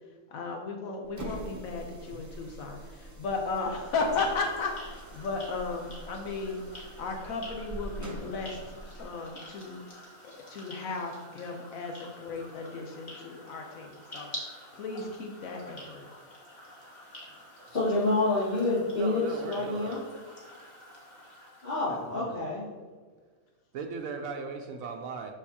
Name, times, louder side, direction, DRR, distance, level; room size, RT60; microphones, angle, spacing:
voice 1, 0.3-6.6 7.0-9.8 10.2-14.3 14.7-16.1, left 3 dB, 80° left, 2 dB, 1.2 m, -35 dB
sound 1, 1.0-9.1, right 1 dB, 20° right, 0.5 m, -44 dB
sound 2, 3.7-22.2, equal, 30° left, 1.7 m, -48 dB
voice 2, 17.7-20.0 21.6-22.6, left 2 dB, 50° left, -13 dB, 2.4 m, -28 dB
voice 3, 18.9-20.0 21.9-22.4 23.7-25.3, right 4 dB, 75° right, 3 dB, 1.0 m, -38 dB
6.5 x 6.1 x 2.8 m, 1.5 s
omnidirectional pair, 1.4 m